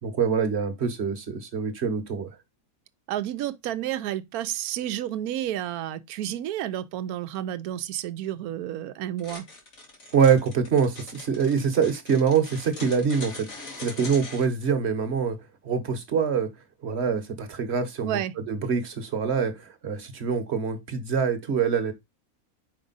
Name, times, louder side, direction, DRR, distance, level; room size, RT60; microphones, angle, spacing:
voice 1, 0.0-2.3 10.1-13.5 13.8-15.4 15.6-16.5 16.8-21.9, right 6 dB, 50° right, 1.2 m, -25 dB
voice 2, 3.1-9.5 18.0-18.3, right 12 dB, 85° right, 1.1 m, -31 dB
sound 1, 9.2-14.5, left 3 dB, 65° left, 2.4 m, -41 dB
5.1 x 4.8 x 3.9 m
omnidirectional pair, 1.5 m